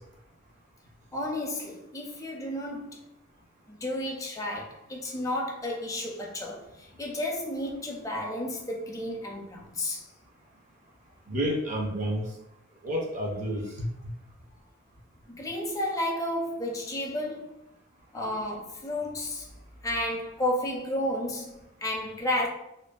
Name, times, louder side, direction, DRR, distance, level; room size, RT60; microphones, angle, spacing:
voice 1, 1.1-3.0 3.7-10.1 15.3-17.5 18.1-19.5 19.8-22.5, left 1 dB, 15° left, 0.4 m, -32 dB
voice 2, 11.3-12.3 12.8-14.1, equal, 40° right, 0.5 m, -30 dB
2.5 x 2.3 x 2.2 m
head